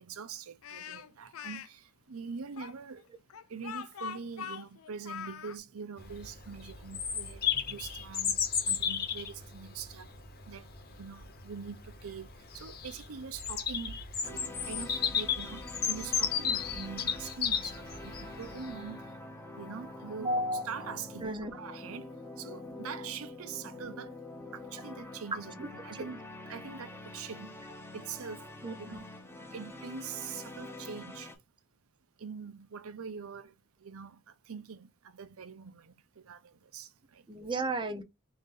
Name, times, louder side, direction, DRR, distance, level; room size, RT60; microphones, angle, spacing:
voice 1, 0.0-3.0 3.5-8.4 8.7-10.1 10.5-10.7 11.0-12.3 12.5-14.0 14.2-19.1 19.6-22.1 22.4-24.1 24.5-27.6 27.9-28.4 28.8-29.1 29.5-31.3 32.2-33.5 33.8-35.9 36.2-37.2 37.6-37.7, right 6 dB, 80° right, 0.6 m, -44 dB
Speech, 0.6-1.7 2.6-5.6, left 7 dB, 75° left, 0.5 m, -42 dB
Bird vocalization bird call bird song, 6.0-18.7, left 7 dB, 45° left, 0.9 m, -34 dB
sound 1, 14.2-31.4, left 2 dB, 10° left, 0.7 m, -46 dB
voice 2, 20.2-20.7 21.2-21.5 28.6-29.0 37.3-38.0, right 1 dB, 20° right, 0.5 m, -33 dB
3.8 x 2.7 x 3.7 m
head